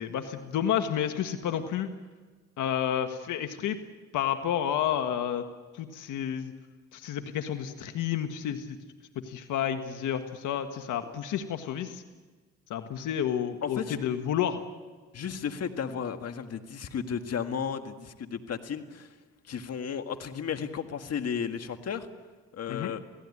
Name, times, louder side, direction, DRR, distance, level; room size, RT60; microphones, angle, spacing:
voice 1, 0.0-1.9 2.6-3.8 4.1-5.4 5.7-6.5 6.9-8.8 9.2-12.0 12.7-14.6 22.7-22.9, left 9 dB, 80° left, 7 dB, 1.6 m, -30 dB
voice 2, 13.6-14.0 15.1-19.1 19.5-22.1 22.5-23.0, left 7 dB, 55° left, 7 dB, 1.9 m, -34 dB
29.0 x 17.5 x 9.8 m, 1.4 s
cardioid pair, 90°, 30 cm